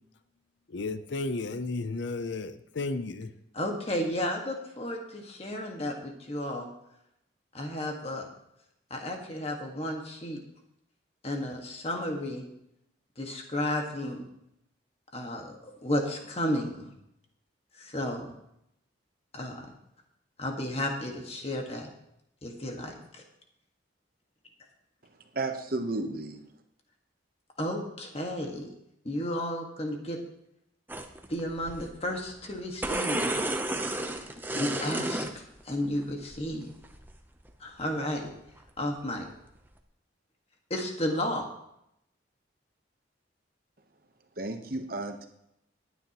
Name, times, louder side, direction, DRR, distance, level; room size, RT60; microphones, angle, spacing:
voice 1, 0.7-3.3, left 3 dB, 70° left, 11 dB, 0.6 m, -33 dB
voice 2, 3.5-6.7 7.5-8.3 8.9-10.4 11.2-12.4 13.2-14.3 15.1-16.9 17.8-18.3 19.3-19.7 20.4-21.9 22.4-23.2 27.6-28.7 29.0-30.2 31.3-33.4 34.5-36.7 37.6-38.3 38.8-39.3 40.7-41.5, left 1 dB, 30° left, 2 dB, 1.7 m, -33 dB
voice 3, 25.3-26.4 44.4-45.3, right 2 dB, 50° right, 6 dB, 1.0 m, -33 dB
sound 1, 30.9-31.8 32.1-32.2 32.5-35.4 36.0-36.4 36.8-37.1 37.5-37.6, right 1 dB, 10° right, 0.7 m, -32 dB
18.0 x 9.5 x 3.0 m, 0.78 s
head